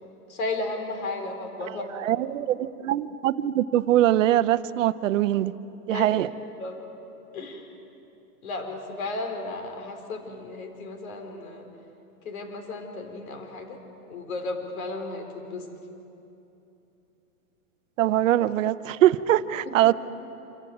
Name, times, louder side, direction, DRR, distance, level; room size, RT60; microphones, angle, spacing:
voice 1, 0.0-1.9 5.9-6.1 6.6-6.8 7.3-7.7 8.4-11.7 12.2-13.8 14.1-15.7, left 2 dB, 65° left, 5 dB, 4.0 m, -34 dB
voice 2, 2.0-5.5 5.9-6.3 18.0-19.9, right 13 dB, 55° right, 15 dB, 0.9 m, -22 dB
27.0 x 15.0 x 9.3 m, 2.9 s
hypercardioid pair, 145°, 45 cm